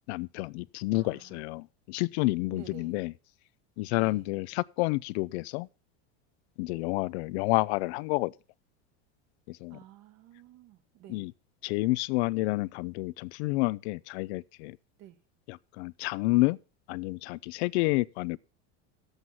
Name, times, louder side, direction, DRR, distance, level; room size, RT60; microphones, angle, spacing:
voice 1, 0.1-3.1 3.8-5.7 6.6-8.3 9.5-9.8 11.1-11.3 11.6-14.8 15.5-16.6 16.9-18.4, left 22 dB, 70° left, 0.5 m, -29 dB
voice 2, 0.9-1.5 2.5-3.0 3.9-4.3 9.7-11.3 15.0-15.2, right 12 dB, 50° right, 1.2 m, -51 dB
11.0 x 8.0 x 5.7 m
supercardioid pair, 130°, 34 cm